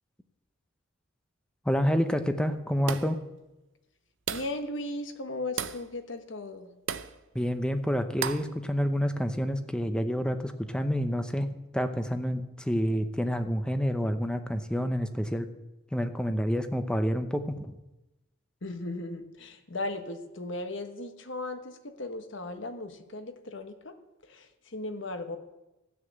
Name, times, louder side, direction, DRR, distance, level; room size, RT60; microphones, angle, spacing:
voice 1, 1.6-3.2 7.3-11.5 11.7-15.5 15.9-17.8, equal, 5° left, 8 dB, 0.7 m, -28 dB
sound 1, 2.9-3.2 4.3-4.6 5.6-5.9 6.9-7.2 8.2-8.5, right 7 dB, 60° right, 0.6 m, -34 dB
voice 2, 4.3-6.7 18.6-23.9 24.2-25.4, left 2 dB, 60° left, 8 dB, 1.2 m, -37 dB
14.0 x 6.5 x 8.0 m, 0.99 s
head